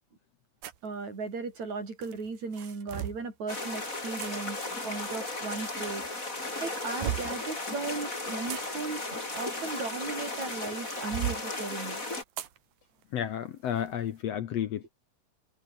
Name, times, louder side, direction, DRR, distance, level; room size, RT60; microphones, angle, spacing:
sound 1, 0.6-0.9 2.0-3.3 4.2-4.3 5.5-6.1 6.5-7.4 8.2-10.3 10.7-11.4 12.4-12.6 13.0-13.1 13.7-13.9, right 12 dB, 80° right, 3.2 m, -37 dB
voice 1, 0.8-6.2 6.6-12.0, right 4 dB, 55° right, 7.4 m, -37 dB
sound 2, 3.5-12.2, left 2 dB, 20° left, 5.5 m, -36 dB
voice 2, 6.9-7.2 13.1-14.9, left 10 dB, 65° left, 1.9 m, -32 dB
omnidirectional pair, 4.0 m